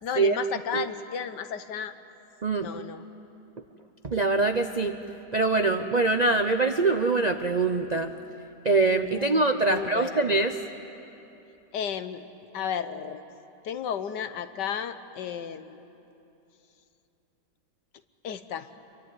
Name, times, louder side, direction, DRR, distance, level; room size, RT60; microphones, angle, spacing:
voice 1, 0.0-1.9 2.6-3.0 9.1-10.2 11.7-12.3 12.5-13.2 13.6-15.8 18.2-18.7, left 8 dB, 75° left, 11 dB, 1.6 m, -33 dB
voice 2, 4.0-4.9 5.3-8.1 8.6-10.6, right 3 dB, 50° right, 7 dB, 0.5 m, -23 dB
26.5 x 23.5 x 9.4 m, 2.9 s
omnidirectional pair, 1.9 m